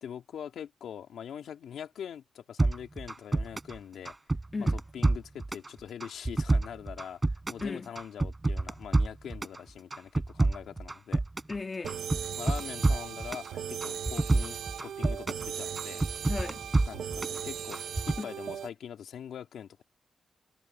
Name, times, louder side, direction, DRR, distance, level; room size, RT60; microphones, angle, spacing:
voice 1, 0.0-4.1 4.6-11.2 12.4-16.0 16.9-19.8, left 9 dB, 85° left, 3.0 m, -43 dB
sound 1, 2.6-3.8 4.0-5.7 6.0-7.7 7.9-9.6 9.9-11.6 11.9-13.5 13.8-15.5 15.8-17.4 17.7-18.2, right 2 dB, 25° right, 4.4 m, -27 dB
voice 2, 11.5-12.0 16.3-16.6 18.2-18.3, left 3 dB, 40° left, 2.2 m, -35 dB
sound 2, 11.8-18.7, right 9 dB, 85° right, 0.9 m, -38 dB
cardioid pair, 70°, 0 cm